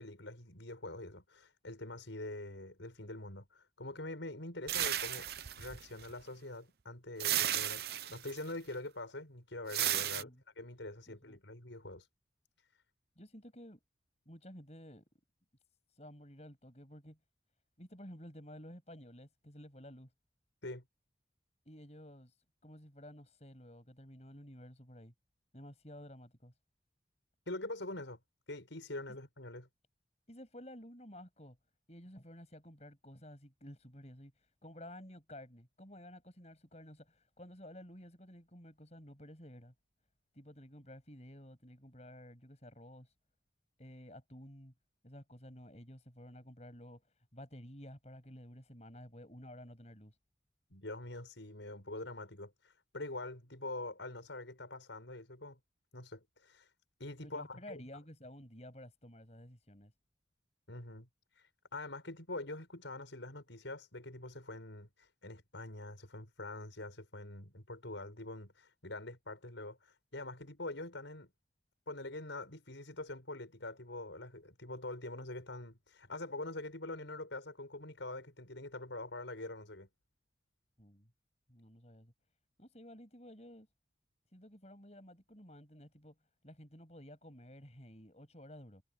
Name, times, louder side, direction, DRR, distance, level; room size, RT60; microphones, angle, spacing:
voice 1, 0.0-5.3 5.6-10.3 10.6-12.0 20.6-20.8 27.5-28.2 28.5-29.7 50.7-52.5 52.9-55.6 55.9-56.7 57.0-57.9 60.7-61.1 61.7-71.3 71.9-79.9, left 2 dB, 85° left, 6.2 m, -44 dB
sound 1, 4.7-6.1 7.2-8.4 9.7-10.2, right 12 dB, 55° right, 0.7 m, -34 dB
voice 2, 10.1-10.4 11.1-11.4 13.2-13.8 14.3-15.0 15.9-17.2 17.8-20.1 21.7-22.4 22.6-25.1 25.5-26.5 29.1-29.2 30.3-31.6 31.9-39.7 40.3-43.1 43.8-44.7 45.0-47.0 47.3-50.2 57.2-59.9 80.8-81.1 81.5-82.1 82.6-83.7 84.3-86.2 86.4-88.8, equal, 35° left, 7.5 m, -53 dB
head